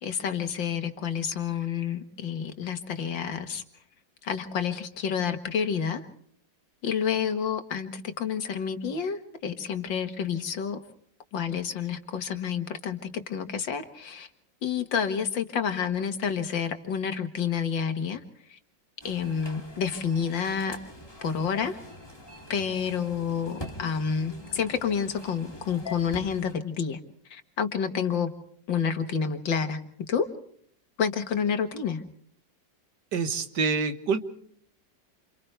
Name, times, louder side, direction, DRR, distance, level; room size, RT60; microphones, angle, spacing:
voice 1, 0.0-3.6 4.2-6.0 6.8-10.8 11.3-14.3 14.6-18.2 18.5-18.6 19.0-20.8 21.2-21.8 22.5-27.0 27.3-28.3 28.7-29.8 30.1-30.3 31.0-32.0, left 7 dB, 90° left, 7 dB, 2.3 m, -29 dB
sound 1, 19.0-26.5, left 2 dB, 15° left, 2.3 m, -44 dB
voice 2, 33.1-34.2, right 5 dB, 65° right, 9 dB, 2.0 m, -26 dB
28.5 x 28.0 x 3.4 m, 0.63 s
omnidirectional pair, 2.0 m